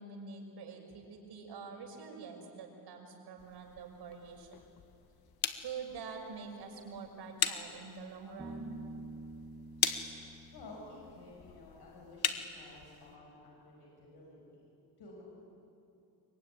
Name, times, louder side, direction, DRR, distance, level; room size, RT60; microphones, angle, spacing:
voice 1, 0.0-4.5 5.6-8.8, right 5 dB, 90° right, 1 dB, 5.9 m, -46 dB
sound 1, 3.4-13.1, left 8 dB, 65° left, 1.6 m, -40 dB
Bass guitar, 8.4-11.9, right 2 dB, 25° right, 2.6 m, -48 dB
voice 2, 10.5-14.6 15.0-15.2, left 2 dB, 85° left, -3 dB, 6.9 m, -52 dB
25.0 x 23.5 x 10.0 m, 2.7 s
cardioid pair, 120°, 39 cm